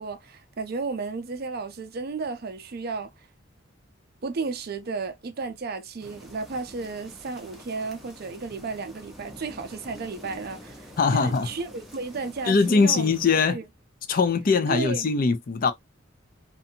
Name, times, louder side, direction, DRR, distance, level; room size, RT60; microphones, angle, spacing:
voice 1, 0.0-3.1 4.2-13.1 13.5-13.6 14.7-15.1, right 4 dB, 50° right, 0.5 m, -33 dB
sound 1, 6.0-13.5, equal, ahead, 0.7 m, -47 dB
voice 2, 11.0-11.5 12.5-13.6 14.1-15.7, left 4 dB, 45° left, 0.4 m, -21 dB
2.6 x 2.3 x 2.6 m
head